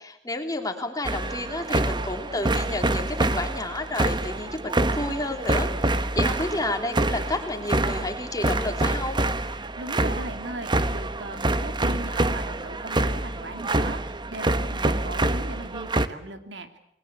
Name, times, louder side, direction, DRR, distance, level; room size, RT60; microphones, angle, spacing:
voice 1, 0.0-9.2, left 2 dB, 20° left, 5 dB, 3.2 m, -31 dB
sound 1, 1.0-16.1, right 2 dB, 25° right, 1.1 m, -26 dB
voice 2, 9.8-16.8, right 2 dB, 85° right, 8 dB, 2.8 m, -38 dB
29.0 x 21.0 x 8.2 m, 0.78 s
head